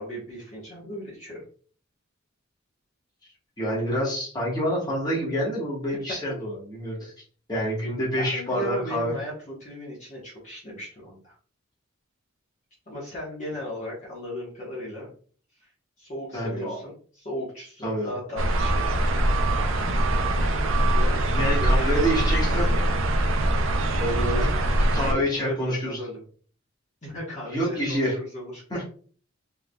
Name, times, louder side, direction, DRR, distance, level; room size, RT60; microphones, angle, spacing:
voice 1, 0.0-1.4 8.2-11.3 12.9-15.1 15.6-15.7 16.0-19.2 20.9-22.8 24.3-24.5 25.0-26.2 27.0-28.6, equal, 35° left, -7 dB, 1.3 m, -36 dB
voice 2, 3.6-7.1 7.5-9.1 16.3-16.8 17.8-18.1 21.3-22.7 23.9-24.5 24.9-26.0 27.5-28.1 28.7-28.9, equal, 20° left, -5 dB, 1.5 m, -27 dB
sound 1, 18.4-25.1, right 1 dB, 80° right, 0.6 m, -23 dB
3.8 x 3.5 x 2.3 m, 0.43 s
head